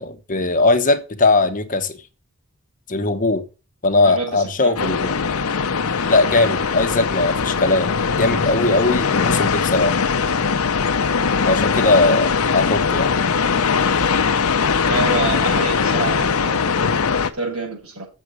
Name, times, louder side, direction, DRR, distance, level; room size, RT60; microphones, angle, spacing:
voice 1, 0.0-2.0 2.9-3.4 3.8-5.1 6.1-9.9 11.4-13.1, left 2 dB, 40° left, 1.1 m, -19 dB
voice 2, 4.0-4.9 14.8-16.7 17.3-18.1, right 3 dB, 80° right, 6.4 m, -27 dB
sound 1, 4.8-17.3, left 5 dB, 70° left, 0.8 m, -20 dB
7.4 x 6.8 x 6.2 m
head